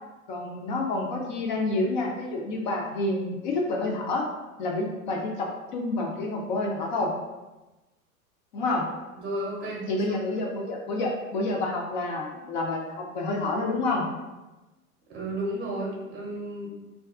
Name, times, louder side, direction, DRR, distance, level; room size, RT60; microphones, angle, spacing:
voice 1, 0.3-4.2 4.6-7.1 8.5-8.9 9.9-14.1, left 2 dB, 35° left, 0 dB, 0.4 m, -28 dB
voice 2, 9.2-9.8 15.1-16.7, right 1 dB, 25° right, -3 dB, 0.7 m, -32 dB
2.4 x 2.2 x 3.4 m, 1.1 s
figure-of-eight pair, 95°, 44 cm